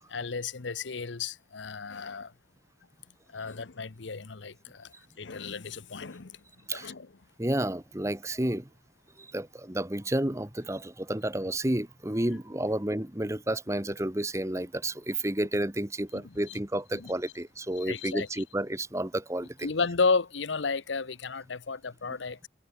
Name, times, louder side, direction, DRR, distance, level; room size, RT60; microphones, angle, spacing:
voice 1, 0.1-2.3 3.3-6.4 6.7-7.1 12.3-12.4 16.1-16.6 16.9-17.1 17.8-18.4 19.6-22.5, left 4 dB, 80° left, 0.9 m, -33 dB
voice 2, 7.4-8.7 9.2-19.7, right 1 dB, 15° right, 1.4 m, -31 dB
head